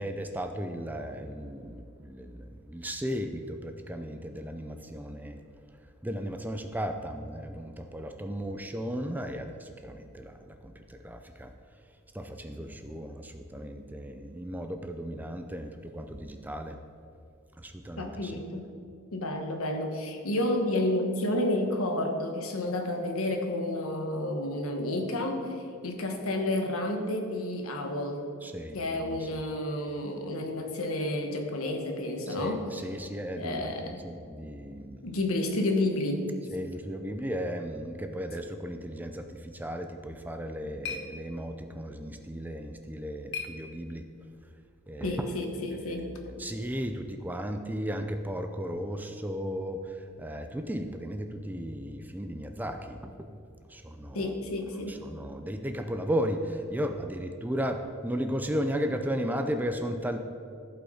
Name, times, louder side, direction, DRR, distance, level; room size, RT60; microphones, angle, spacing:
voice 1, 0.0-5.4 6.0-11.5 12.1-16.8 17.6-18.4 28.4-29.4 32.3-35.1 36.5-44.1 44.9-45.4 45.7-53.4 53.7-54.3 54.9-60.2, equal, 10° right, 6 dB, 0.4 m, -35 dB
voice 2, 18.0-18.6 19.1-28.2 28.7-32.6 33.4-34.0 35.0-36.2 45.0-46.1 54.1-55.0, left 1 dB, 80° left, 3 dB, 1.2 m, -30 dB
copo brindando, 40.1-44.3, left 6 dB, 55° left, 0.8 m, -44 dB
14.5 x 5.6 x 4.2 m, 2.5 s
head